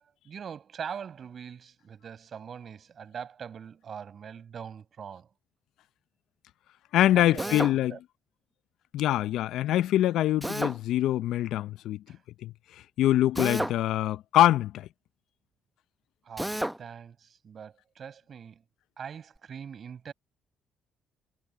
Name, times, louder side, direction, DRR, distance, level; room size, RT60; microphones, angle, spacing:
voice 1, 0.0-5.3 7.1-8.0 12.1-12.2 16.2-18.6 19.0-20.1, right 7 dB, 55° right, 6.0 m, -42 dB
voice 2, 6.9-7.9 8.9-12.0 12.4-12.5 13.0-14.9, left 13 dB, 75° left, 0.6 m, -24 dB
Drill, 7.4-7.8 10.4-10.8 13.4-13.8 16.4-16.8, right 1 dB, 5° right, 1.2 m, -30 dB
hypercardioid pair, 50°, 0 cm